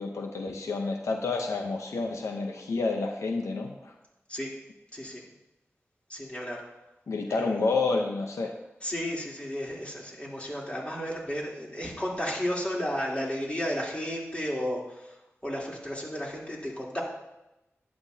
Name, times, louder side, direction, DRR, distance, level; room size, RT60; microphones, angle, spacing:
voice 1, 0.0-3.9 7.1-8.5, left 3 dB, 90° left, 3 dB, 0.8 m, -29 dB
voice 2, 4.9-5.2 6.1-6.6 7.3-7.4 8.8-15.1 15.4-17.0, equal, 25° left, -4 dB, 3.4 m, -33 dB
11.5 x 10.0 x 2.8 m, 0.94 s
cardioid pair, 40°, 5 cm